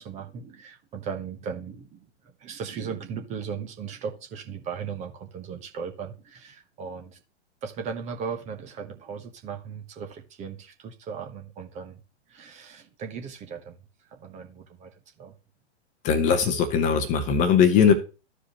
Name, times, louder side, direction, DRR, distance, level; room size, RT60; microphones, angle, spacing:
voice 1, 0.0-2.1 2.4-7.2 7.6-12.0 12.3-13.8 14.1-14.9 15.2-15.3, right 6 dB, 20° right, 5 dB, 1.2 m, -37 dB
voice 2, 16.0-17.9, left 7 dB, 20° left, 9 dB, 1.0 m, -20 dB
14.0 x 4.9 x 3.0 m, 0.31 s
figure-of-eight pair, 110°, 35 cm